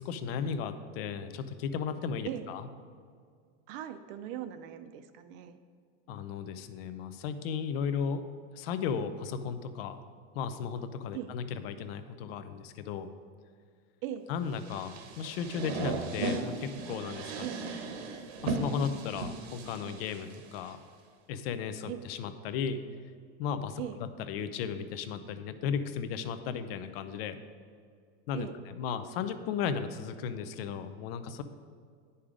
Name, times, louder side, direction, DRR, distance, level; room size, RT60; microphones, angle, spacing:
voice 1, 0.0-2.6 6.1-8.2 8.5-10.0 10.3-13.1 14.3-17.5 18.4-20.8 21.3-22.8 23.4-27.4 28.3-28.5 28.7-31.4, left 7 dB, 65° left, 10 dB, 0.7 m, -35 dB
voice 2, 3.7-5.6 11.1-11.3 14.0-14.3 17.4-17.6 21.9-22.0 23.8-24.0 28.3-28.6, right 11 dB, 55° right, 10 dB, 0.6 m, -39 dB
sound 1, 14.6-20.7, right 3 dB, 75° right, 1.2 m, -37 dB
10.0 x 5.6 x 5.0 m, 2.1 s
supercardioid pair, 160°, 33 cm